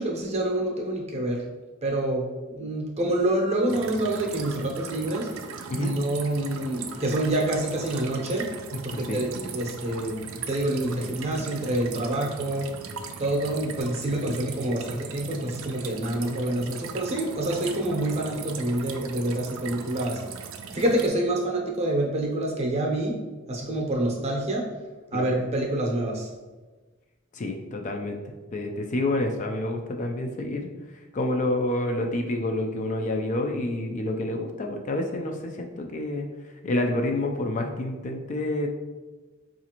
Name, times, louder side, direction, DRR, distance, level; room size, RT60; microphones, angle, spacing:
voice 1, 0.0-1.4 1.8-2.2 2.5-5.3 5.8-8.5 8.8-12.7 13.2-20.2 20.7-23.2 23.5-24.6 25.1-26.3, right 1 dB, 30° right, 0 dB, 0.7 m, -27 dB
sound 1, 3.7-21.1, right 6 dB, 75° right, 0.4 m, -39 dB
voice 2, 27.3-28.2 28.5-30.7 31.1-36.3 36.6-38.7, left 1 dB, 35° left, 3 dB, 0.3 m, -28 dB
4.8 x 2.5 x 2.9 m, 1.2 s
head